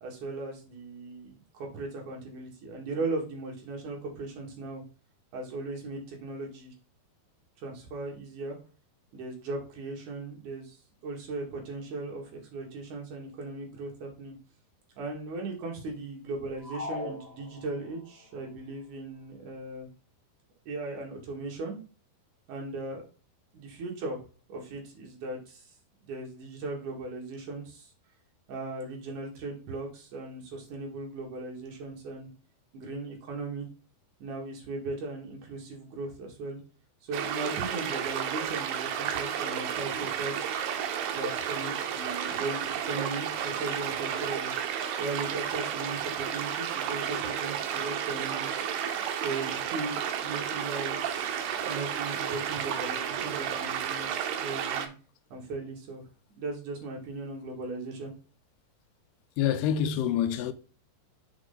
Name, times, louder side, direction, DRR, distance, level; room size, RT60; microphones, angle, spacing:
voice 1, 0.0-4.8 5.3-6.7 7.6-8.6 9.1-10.8 11.0-14.4 15.0-19.9 20.7-21.8 22.5-23.0 23.5-24.2 24.5-25.7 26.0-27.9 28.5-32.3 32.7-33.7 34.2-36.6 37.0-40.5 41.1-44.5 45.0-48.7 49.2-54.9 55.3-56.0 56.4-58.1, right 3 dB, 60° right, 2.9 m, -38 dB
sound 1, 16.6-18.1, left 2 dB, 25° left, 0.8 m, -39 dB
sound 2, 37.1-54.9, right 8 dB, 80° right, 2.4 m, -32 dB
voice 2, 59.4-60.5, left 9 dB, 85° left, 2.6 m, -26 dB
6.0 x 4.6 x 3.9 m
omnidirectional pair, 4.5 m